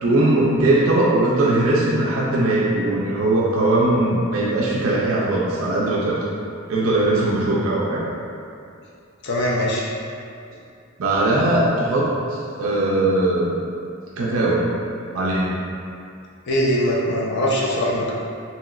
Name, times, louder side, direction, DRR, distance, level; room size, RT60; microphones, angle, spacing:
voice 1, 0.0-6.2 6.7-8.0 11.0-13.5 14.2-14.7 15.1-15.5, right 2 dB, 75° right, -5 dB, 0.4 m, -20 dB
voice 2, 9.2-9.8 16.5-18.1, equal, 55° left, -4 dB, 0.4 m, -21 dB
2.9 x 2.8 x 2.4 m, 2.5 s
head